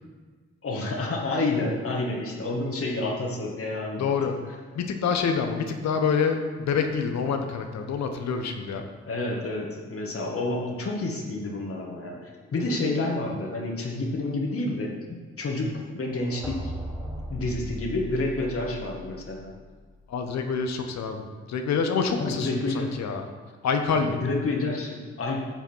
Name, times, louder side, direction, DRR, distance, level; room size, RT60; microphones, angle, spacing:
voice 1, 0.6-4.1 9.1-14.9 15.4-16.7 17.3-19.5 22.2-22.9 24.2-25.4, left 2 dB, 50° left, -1 dB, 1.9 m, -29 dB
voice 2, 4.0-4.4 4.7-8.8 20.1-23.3 23.6-24.2, left 5 dB, 65° left, 6 dB, 1.1 m, -27 dB
sound 1, 16.1-20.1, equal, 5° right, 2.7 m, -37 dB
9.2 x 6.9 x 4.6 m, 1.5 s
hypercardioid pair, 40°, 30 cm